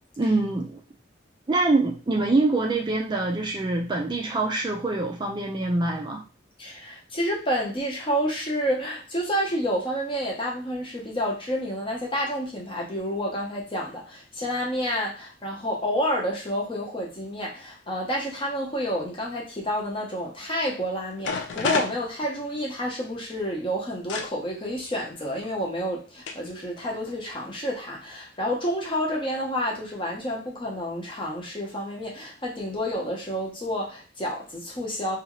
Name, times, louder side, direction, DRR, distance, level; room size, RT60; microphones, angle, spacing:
voice 1, 0.2-0.8 1.5-6.2, right 2 dB, 25° right, 0 dB, 0.4 m, -25 dB
voice 2, 6.6-35.2, equal, 25° left, -1 dB, 0.7 m, -29 dB
sound 1, 20.8-20.9 21.2-22.8 24.1-24.3 25.4-25.5 26.3-26.5 26.8-27.2, left 4 dB, 65° left, 0.4 m, -30 dB
2.7 x 2.3 x 3.0 m, 0.33 s
head